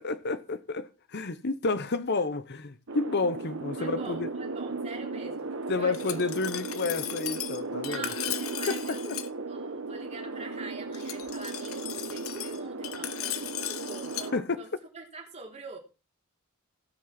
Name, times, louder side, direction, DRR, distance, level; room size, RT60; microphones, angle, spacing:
voice 1, 0.0-4.3 5.7-8.1 8.7-9.2 14.3-14.6, left 3 dB, 55° left, 0.9 m, -30 dB
sound 1, 2.9-14.4, right 3 dB, 65° right, 1.1 m, -36 dB
voice 2, 3.8-6.2 7.9-15.8, right 4 dB, 30° right, 3.6 m, -45 dB
Glass, 5.9-9.3 10.9-14.3, left 12 dB, 85° left, 1.0 m, -37 dB
17.5 x 6.2 x 6.0 m
head